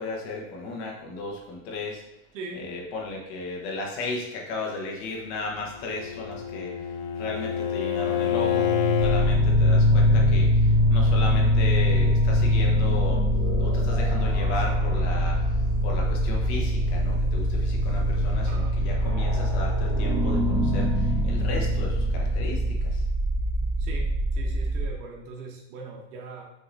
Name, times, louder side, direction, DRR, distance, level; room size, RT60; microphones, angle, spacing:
voice 1, 0.0-2.0 2.5-6.8 7.2-13.2 13.6-15.4 15.8-23.0, left 3 dB, 55° left, -1 dB, 1.3 m, -35 dB
voice 2, 2.3-2.7 18.3-18.8 23.8-26.4, right 3 dB, 80° right, -1 dB, 0.9 m, -40 dB
Bowed string instrument, 5.6-9.3, left 9 dB, 35° left, 0.4 m, -28 dB
sound 1, 8.2-22.8, left 1 dB, 35° right, 1.6 m, -24 dB
sound 2, 9.0-24.8, right 1 dB, 90° left, 1.0 m, -26 dB
6.3 x 2.9 x 2.6 m, 0.90 s
supercardioid pair, 150°, 38 cm